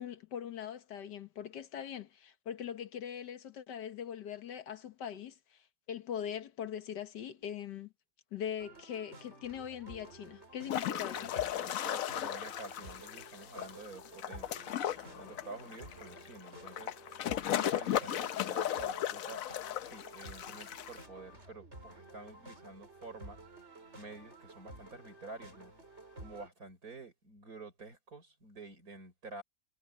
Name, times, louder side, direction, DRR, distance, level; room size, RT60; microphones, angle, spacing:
voice 1, 0.0-7.9 8.3-11.2, left 9 dB, 85° left, 1.9 m, -41 dB
sound 1, 8.6-26.5, right 2 dB, 40° right, 5.7 m, -53 dB
sound 2, 10.7-21.0, left 11 dB, 60° left, 1.0 m, -36 dB
voice 2, 10.9-14.7 15.1-17.0 17.4-19.5 19.8-23.4 24.0-25.7 26.2-29.4, right 3 dB, 55° right, 5.8 m, -49 dB
omnidirectional pair, 1.8 m